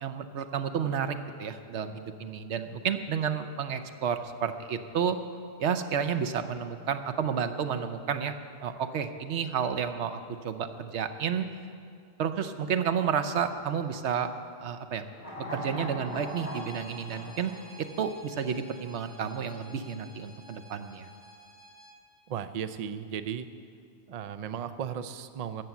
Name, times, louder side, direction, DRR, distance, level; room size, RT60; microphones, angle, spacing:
voice 1, 0.0-5.2 5.6-8.3 8.6-11.5 12.2-14.3 14.6-15.0 15.4-17.5 18.0-21.1, right 7 dB, 80° right, 9 dB, 1.0 m, -31 dB
sound 1, 15.1-18.5 18.8-18.9, left 1 dB, 65° left, 2.9 m, -40 dB
Bowed string instrument, 16.0-22.0, equal, 50° left, 1.8 m, -52 dB
voice 2, 22.3-23.5 24.1-25.6, right 8 dB, 50° right, 11 dB, 0.5 m, -35 dB
13.5 x 7.8 x 7.1 m, 2.4 s
omnidirectional pair, 1.1 m